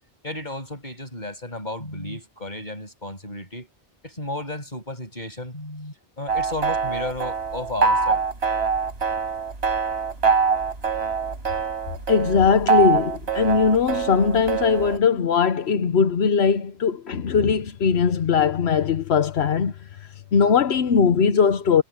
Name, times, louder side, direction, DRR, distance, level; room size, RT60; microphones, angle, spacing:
voice 1, 0.2-3.7 4.0-8.2, left 1 dB, 45° left, 7.5 m, -33 dB
sound 1, 6.3-15.0, right 5 dB, 85° right, 4.4 m, -24 dB
voice 2, 12.1-21.8, left 6 dB, 80° left, 1.2 m, -20 dB
omnidirectional pair, 1.1 m